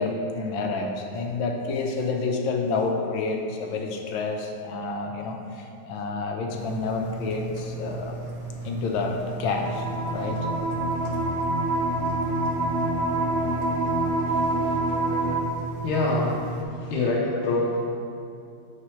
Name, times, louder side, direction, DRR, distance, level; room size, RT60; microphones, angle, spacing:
voice 1, 0.0-8.2 8.6-10.5 16.8-16.9, left 3 dB, 70° left, 2 dB, 1.4 m, -29 dB
Engine, 6.5-16.6, right 3 dB, 50° right, 1.1 m, -36 dB
sound 1, 9.5-15.4, right 2 dB, 80° right, 0.5 m, -26 dB
voice 2, 15.8-16.6 16.9-17.8, left 2 dB, 90° left, -3 dB, 1.6 m, -24 dB
9.6 x 5.8 x 3.0 m, 2.5 s
omnidirectional pair, 2.2 m